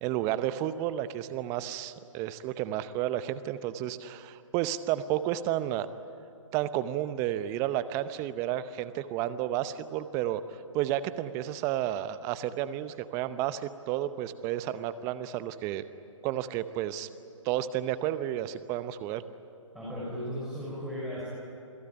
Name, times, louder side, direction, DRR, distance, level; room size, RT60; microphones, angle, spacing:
voice 1, 0.0-5.9 6.5-10.4 10.7-15.8 16.2-17.1 17.4-19.2, right 12 dB, 15° right, 13 dB, 0.7 m, -31 dB
voice 2, 19.7-21.2, equal, ahead, -9 dB, 6.1 m, -36 dB
28.0 x 17.0 x 10.0 m, 2.7 s
figure-of-eight pair, 140°, 17 cm